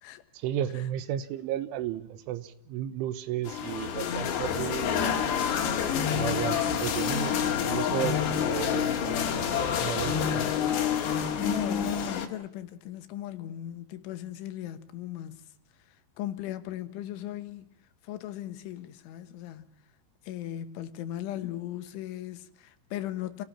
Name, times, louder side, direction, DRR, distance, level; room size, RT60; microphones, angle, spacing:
voice 1, 0.4-5.1 6.1-7.4 7.6-10.6, right 12 dB, 90° right, 3.7 m, -34 dB
sound 1, 3.5-12.3, left 8 dB, 70° left, 4.1 m, -28 dB
voice 2, 11.4-15.4 15.9-17.7 18.0-19.7 20.2-23.5, left 12 dB, 90° left, 3.8 m, -37 dB
28.0 x 18.0 x 7.4 m
omnidirectional pair, 5.4 m